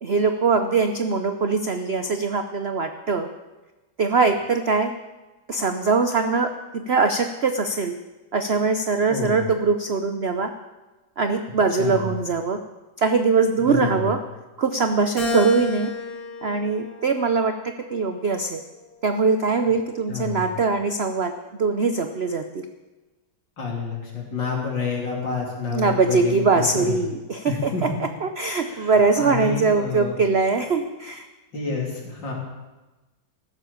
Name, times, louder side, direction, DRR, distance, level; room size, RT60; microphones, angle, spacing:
voice 1, 0.0-3.3 4.0-4.9 5.5-7.9 8.3-10.5 11.2-12.6 13.0-14.2 14.6-15.9 16.4-17.5 17.9-18.6 19.0-21.3 21.6-22.7 25.7-31.3, right 4 dB, 55° right, 8 dB, 0.7 m, -22 dB
voice 2, 9.1-9.5 11.8-12.1 13.6-14.1 20.1-20.5 23.6-27.0 27.5-28.0 28.6-30.2 31.5-32.3, left 4 dB, 75° left, -1 dB, 3.9 m, -29 dB
Keyboard (musical), 15.2-17.7 18.3-19.5, left 3 dB, 50° left, 3.2 m, -33 dB
15.0 x 12.5 x 7.1 m, 1.1 s
omnidirectional pair, 2.0 m